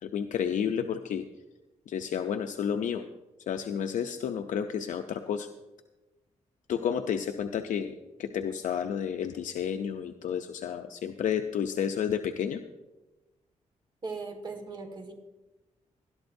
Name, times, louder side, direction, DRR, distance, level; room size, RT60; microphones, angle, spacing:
voice 1, 0.0-1.3 1.9-3.0 3.5-5.5 6.7-12.6, left 8 dB, 80° left, 6 dB, 0.6 m, -31 dB
voice 2, 14.0-15.1, right 4 dB, 35° right, 4 dB, 1.8 m, -38 dB
19.5 x 12.0 x 2.7 m, 1.1 s
wide cardioid pair, 150°, 13 cm